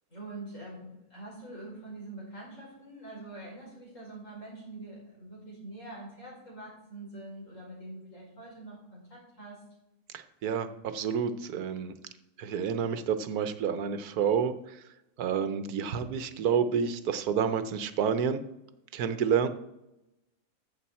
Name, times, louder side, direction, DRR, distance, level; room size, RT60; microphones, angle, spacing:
voice 1, 0.1-9.6, right 2 dB, 55° left, -4 dB, 5.3 m, -45 dB
voice 2, 10.1-11.9 12.4-14.8 15.2-18.4 18.9-19.5, right 7 dB, 85° right, 11 dB, 1.3 m, -29 dB
14.5 x 7.2 x 4.2 m, 0.90 s
omnidirectional pair, 1.6 m